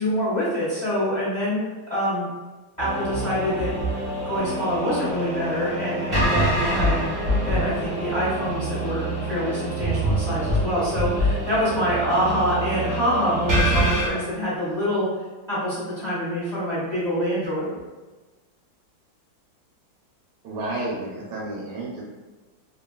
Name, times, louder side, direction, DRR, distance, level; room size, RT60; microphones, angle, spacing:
voice 1, 0.0-2.3 2.8-7.1 7.4-15.1 15.5-17.7, equal, 30° left, -12 dB, 0.9 m, -26 dB
sound 1, 2.8-14.1, right 1 dB, 30° right, 0.7 m, -25 dB
voice 2, 20.4-22.0, right 2 dB, 75° right, -3 dB, 1.1 m, -31 dB
2.9 x 2.5 x 2.3 m, 1.3 s
omnidirectional pair, 2.1 m